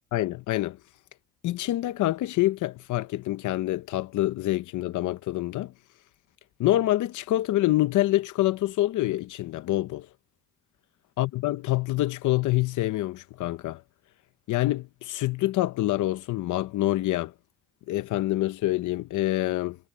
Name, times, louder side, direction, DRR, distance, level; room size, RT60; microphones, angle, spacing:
voice 1, 0.1-0.8 1.4-5.7 6.6-10.1 11.2-13.8 14.5-17.3 17.9-19.8, left 16 dB, 80° left, 0.8 m, -26 dB
cardioid pair, 90°, 30 cm